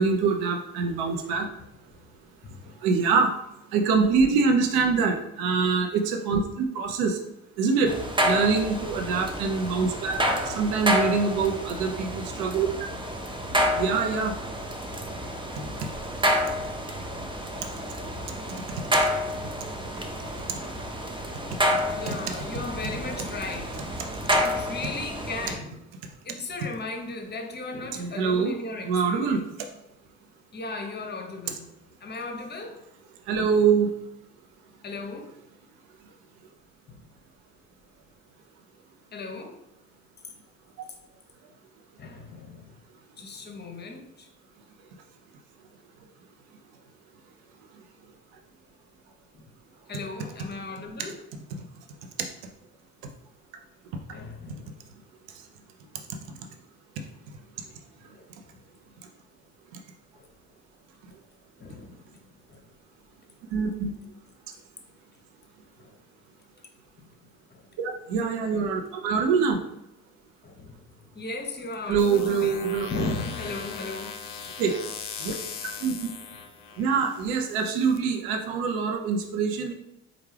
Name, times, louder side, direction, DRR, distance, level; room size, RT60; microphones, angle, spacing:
voice 1, 0.0-1.5 2.8-3.3 3.7-7.2 7.6-7.9 8.2-10.2 10.5-12.7 13.8-14.3 22.1-22.2 27.9-28.5 28.8-29.4 33.3-33.9 63.5-63.9 67.8-69.6 71.9-72.9 74.6-74.7 75.2-75.3 75.8-75.9 76.8-79.7, right 5 dB, 55° right, 3 dB, 0.8 m, -24 dB
voice 2, 2.4-2.9 21.9-23.8 24.4-25.8 26.2-29.4 30.5-31.7 32.0-32.9 34.8-35.4 36.9-37.0 39.1-39.6 42.0-42.7 43.2-44.3 49.3-49.5 49.9-51.3 54.1-54.8 58.1-58.6 60.1-60.3 61.6-62.1 62.5-62.6 65.8-66.0 67.5-67.6 70.4-70.8 71.1-72.6 72.9-74.2 74.4-74.5, left 3 dB, 25° left, 4 dB, 0.8 m, -36 dB
sound 1, 7.9-25.6, equal, 10° right, 0.7 m, -29 dB
sound 2, 72.0-78.0, left 7 dB, 50° left, 0.6 m, -40 dB
4.4 x 2.5 x 3.3 m, 0.81 s
figure-of-eight pair, 55°, 43 cm